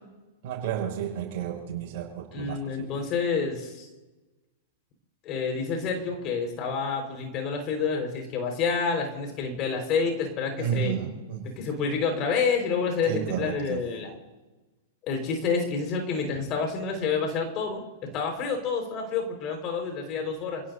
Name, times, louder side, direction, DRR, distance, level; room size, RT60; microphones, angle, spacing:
voice 1, 0.4-3.0 10.6-11.5 13.1-13.8, right 9 dB, 50° right, 1 dB, 6.6 m, -32 dB
voice 2, 2.3-3.9 5.2-10.9 11.6-14.1 15.1-17.8 18.1-20.6, left 5 dB, 40° left, 3 dB, 5.1 m, -28 dB
29.5 x 17.0 x 2.8 m, 1.1 s
figure-of-eight pair, 100°, 0 cm